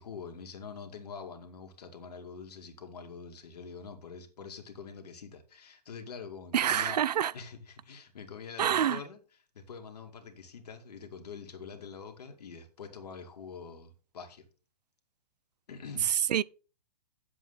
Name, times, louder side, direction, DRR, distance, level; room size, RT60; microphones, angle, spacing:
voice 1, 0.0-9.2 9.5-14.5 15.7-16.4, left 5 dB, 70° left, 2.2 m, -45 dB
voice 2, 6.5-7.3 8.6-9.0 16.3-16.4, right 9 dB, 80° right, 0.5 m, -26 dB
9.9 x 7.7 x 4.1 m
hypercardioid pair, 130°, 21 cm